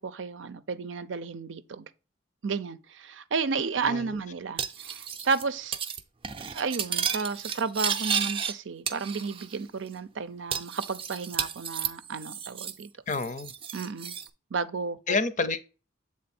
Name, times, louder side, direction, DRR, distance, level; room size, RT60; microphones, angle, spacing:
voice 1, 0.0-1.9 2.4-5.8 6.5-12.9 13.7-14.2 14.5-15.2, right 5 dB, 85° right, 0.5 m, -32 dB
voice 2, 3.8-4.2 13.1-13.5 15.1-15.6, left 4 dB, 40° left, 0.6 m, -29 dB
Cutlery silverware, 4.6-5.4 5.7-6.0 6.2-8.5 8.9-9.6 9.9-10.0 10.5-12.8 13.1-14.3, right 7 dB, 30° right, 0.5 m, -32 dB
7.6 x 3.6 x 4.3 m
head